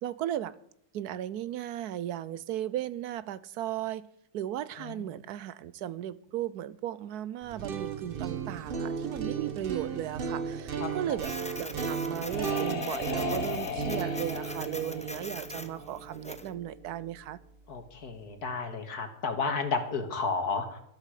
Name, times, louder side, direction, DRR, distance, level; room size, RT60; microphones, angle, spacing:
voice 1, 0.0-0.5 0.9-4.1 4.3-17.4, right 11 dB, 80° right, 1.2 m, -36 dB
sound 1, 7.4-17.4, right 6 dB, 40° right, 1.1 m, -35 dB
Printer, 11.2-16.5, left 1 dB, 10° left, 0.5 m, -43 dB
sound 2, 11.7-16.3, left 8 dB, 50° left, 1.1 m, -38 dB
voice 2, 17.7-20.8, left 4 dB, 75° left, 2.3 m, -32 dB
13.0 x 12.5 x 4.9 m
omnidirectional pair, 1.7 m